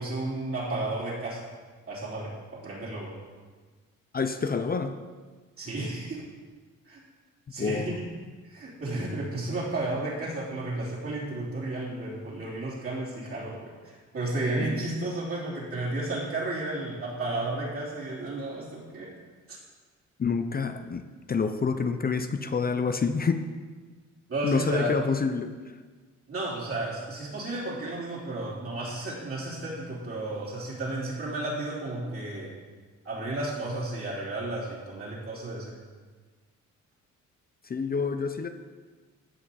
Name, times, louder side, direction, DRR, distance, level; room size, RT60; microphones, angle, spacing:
voice 1, 0.0-1.4 1.9-3.1 5.6-6.2 6.8-7.0 7.5-8.1 8.4-19.1 19.5-19.6 24.3-25.0 26.3-32.5 33.0-35.7, right 2 dB, 50° right, -8 dB, 3.3 m, -33 dB
voice 2, 4.1-4.9 7.6-7.9 14.6-15.1 20.2-23.4 24.4-25.8 37.6-38.5, left 5 dB, 30° left, 8 dB, 0.6 m, -28 dB
15.0 x 5.6 x 4.2 m, 1.4 s
cardioid pair, 90°, 30 cm